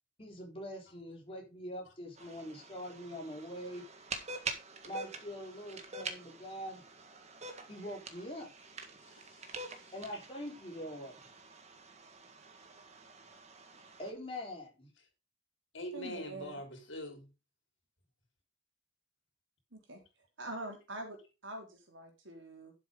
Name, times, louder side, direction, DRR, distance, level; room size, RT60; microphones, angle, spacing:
voice 1, 0.2-3.8 4.9-6.8 7.7-8.5 9.9-11.2 14.0-14.9, equal, 30° left, 3.9 m, -43 dB
sound 1, 2.2-14.1, right 3 dB, 35° right, 1.7 m, -46 dB
voice 2, 9.0-10.2 15.7-17.3, left 1 dB, 75° left, 4.4 m, -45 dB
voice 3, 15.9-16.6 19.7-20.0 20.4-22.7, right 2 dB, 80° right, 3.8 m, -45 dB
11.5 x 7.1 x 3.8 m
head